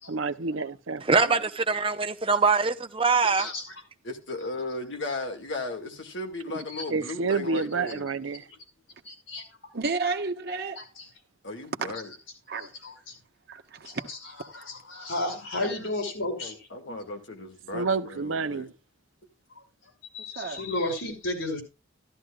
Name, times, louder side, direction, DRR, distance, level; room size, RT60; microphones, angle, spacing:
voice 1, 0.1-1.0 1.3-1.4 6.9-8.4 17.7-18.7, right 4 dB, 80° right, 0.7 m, -29 dB
voice 2, 1.1-3.5, right 4 dB, 25° right, 0.8 m, -23 dB
voice 3, 3.2-3.6 6.7-6.8 9.0-9.4 11.0-11.1 12.6-12.9 13.9-14.2 14.5-16.5 20.1-21.6, left 2 dB, 80° left, 5.5 m, -32 dB
voice 4, 4.0-8.0 11.4-12.1 16.2-18.7, left 2 dB, 65° left, 2.2 m, -36 dB
voice 5, 9.7-10.8 12.5-12.7 13.5-14.1 20.3-20.6, right 4 dB, 55° right, 1.2 m, -31 dB
14.0 x 12.5 x 2.4 m
head